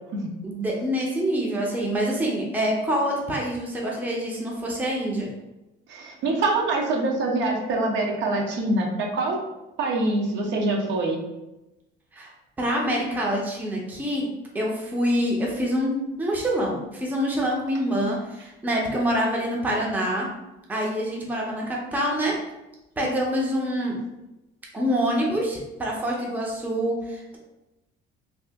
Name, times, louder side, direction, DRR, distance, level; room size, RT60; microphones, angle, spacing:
voice 1, 0.4-5.3 12.1-12.3 12.6-14.3 14.5-20.3 20.7-22.3 23.0-23.9 24.7-27.4, equal, 10° right, -2 dB, 0.5 m, -26 dB
voice 2, 5.9-9.4 9.8-11.2 23.0-23.1, right 2 dB, 65° right, 0 dB, 0.7 m, -25 dB
2.7 x 2.4 x 3.4 m, 0.97 s
cardioid pair, 155°, 20 cm